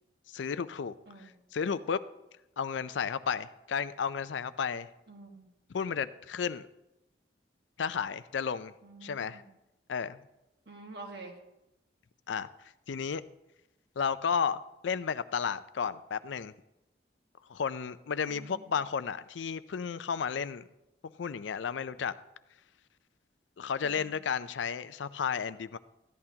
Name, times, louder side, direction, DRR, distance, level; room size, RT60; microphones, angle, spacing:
voice 1, 0.3-2.0 2.6-4.9 5.7-6.6 7.8-8.7 9.0-9.4 9.9-10.2 12.3-12.5 12.9-13.2 14.0-16.5 17.5-20.6 21.0-22.1 23.6-25.8, left 6 dB, 90° left, 15 dB, 0.4 m, -33 dB
voice 2, 5.1-5.5 8.8-9.5 10.7-11.3 18.2-18.7 23.8-24.2, right 3 dB, 65° right, 2 dB, 1.6 m, -48 dB
14.5 x 11.0 x 2.9 m, 0.92 s
head